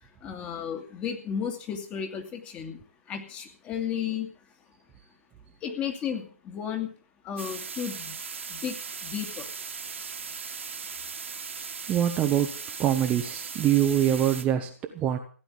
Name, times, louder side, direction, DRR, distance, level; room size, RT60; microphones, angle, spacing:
voice 1, 0.2-2.8 3.1-4.3 5.6-6.9 7.2-8.1 8.5-8.7 9.0-9.4, left 8 dB, 15° left, 5 dB, 2.4 m, -33 dB
sound 1, 7.4-14.4, right 5 dB, 60° right, 2.4 m, -38 dB
voice 2, 11.9-12.5 12.8-15.2, right 11 dB, 15° right, 4 dB, 1.2 m, -24 dB
16.0 x 10.0 x 7.5 m, 0.41 s
figure-of-eight pair, 135°, 7 cm